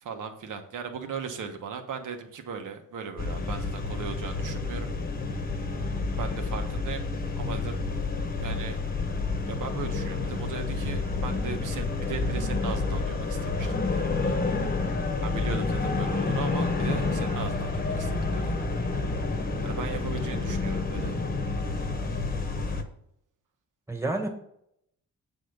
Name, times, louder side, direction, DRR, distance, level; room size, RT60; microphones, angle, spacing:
voice 1, 0.0-4.9 6.2-7.0 7.4-7.8 8.4-8.8 9.5-14.4 15.2-18.6 19.6-21.2, right 6 dB, 85° right, 5 dB, 1.4 m, -38 dB
sound 1, 3.2-22.8, left 3 dB, 30° left, 1.0 m, -29 dB
voice 2, 14.8-15.1 23.9-24.3, right 2 dB, 10° right, 3 dB, 1.5 m, -31 dB
8.3 x 4.2 x 6.6 m, 0.73 s
wide cardioid pair, 135°, 30 cm